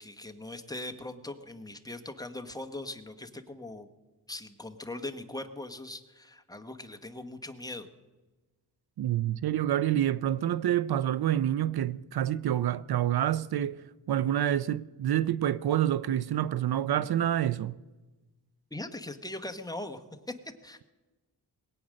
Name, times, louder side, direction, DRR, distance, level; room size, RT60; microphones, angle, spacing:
voice 1, 0.0-3.9 4.3-7.9 18.7-20.0 20.6-20.8, left 2 dB, 10° left, 1.0 m, -40 dB
voice 2, 9.0-13.8 14.1-17.8, right 11 dB, 70° right, 0.5 m, -27 dB
21.5 x 8.8 x 6.4 m
wide cardioid pair, 110°, 40 cm